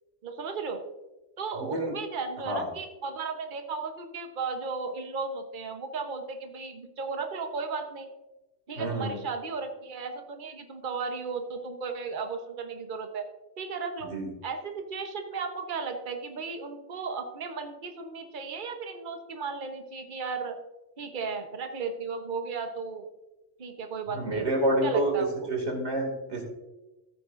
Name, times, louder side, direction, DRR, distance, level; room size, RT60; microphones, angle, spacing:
voice 1, 0.2-0.8 1.4-8.1 8.7-13.2 13.6-14.1 14.4-20.6 21.0-23.1 23.6-24.5 24.8-25.3, right 4 dB, 45° right, 5 dB, 1.1 m, -35 dB
voice 2, 1.6-1.9 2.4-2.6 8.8-9.1 14.0-14.3 24.1-25.1 25.5-26.4, right 1 dB, 70° right, 2 dB, 2.7 m, -28 dB
13.5 x 9.1 x 2.6 m, 1.1 s
omnidirectional pair, 1.2 m